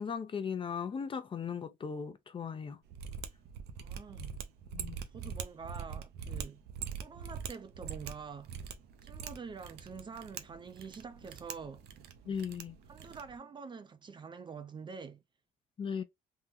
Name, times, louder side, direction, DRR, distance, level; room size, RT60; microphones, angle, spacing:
voice 1, 0.0-2.8 4.7-5.0 12.3-12.8 15.8-16.0, left 6 dB, 30° left, 0.5 m, -37 dB
Mechanisms, 2.9-13.4, right 7 dB, 75° right, 0.6 m, -43 dB
voice 2, 3.8-4.4 5.1-6.6 7.0-8.5 9.0-11.8 12.2-12.3 12.9-15.2, right 5 dB, 30° right, 0.5 m, -46 dB
3.6 x 2.1 x 2.8 m
cardioid pair, 110°, 17 cm